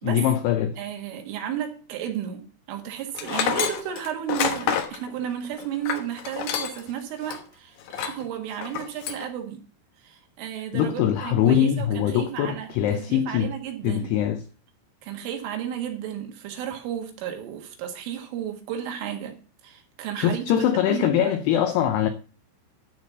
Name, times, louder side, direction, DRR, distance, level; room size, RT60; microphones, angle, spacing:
voice 1, 0.0-0.8 10.7-13.5 13.8-14.4 20.2-22.1, left 10 dB, 85° left, 2.3 m, -22 dB
voice 2, 0.8-9.6 10.0-14.1 15.0-19.4 19.6-21.3, right 10 dB, 85° right, 4.2 m, -33 dB
Tools, 3.2-6.9 7.3-7.4 7.9-8.2 8.6-9.3, left 8 dB, 65° left, 2.8 m, -28 dB
12.5 x 4.3 x 8.3 m
omnidirectional pair, 5.6 m